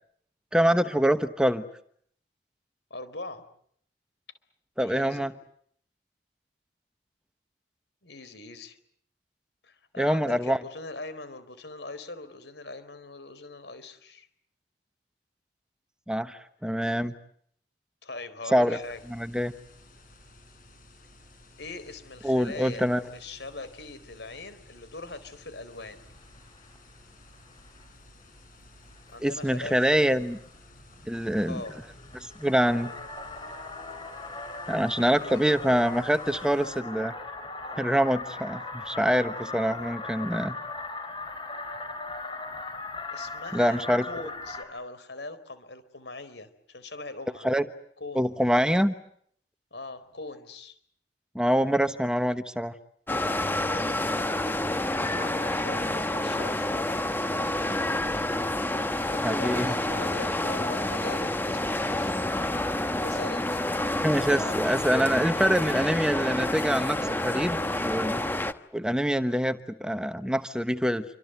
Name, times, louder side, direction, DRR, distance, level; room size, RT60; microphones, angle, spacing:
voice 1, 0.5-1.6 4.8-5.3 10.0-10.6 16.1-17.1 18.5-18.8 19.1-19.5 22.2-23.0 29.2-30.4 31.1-31.6 32.1-32.9 34.7-37.1 37.7-40.5 43.5-44.1 47.4-47.7 48.1-48.9 51.3-52.7 59.2-59.7 64.0-68.2 68.7-71.0, equal, 5° right, 10 dB, 1.1 m, -25 dB
voice 2, 2.9-3.4 4.8-5.3 8.0-8.8 9.6-14.3 18.0-19.0 21.6-26.1 29.1-30.1 31.4-31.8 35.0-35.9 43.1-43.8 44.1-47.5 48.0-48.2 49.7-50.8 53.6-54.6 55.0-57.0 58.7-62.1 63.0-63.6, left 2 dB, 75° left, 13 dB, 4.2 m, -41 dB
sound 1, 18.8-36.8, left 1 dB, 50° left, 7.0 m, -54 dB
sound 2, 25.9-26.9 27.1-27.9 28.5-28.6 28.9-29.2 29.5-44.6, left 3 dB, 30° left, 5.5 m, -39 dB
sound 3, 53.1-68.5, left 1 dB, 10° left, 1.1 m, -28 dB
27.5 x 25.5 x 7.9 m, 0.65 s
head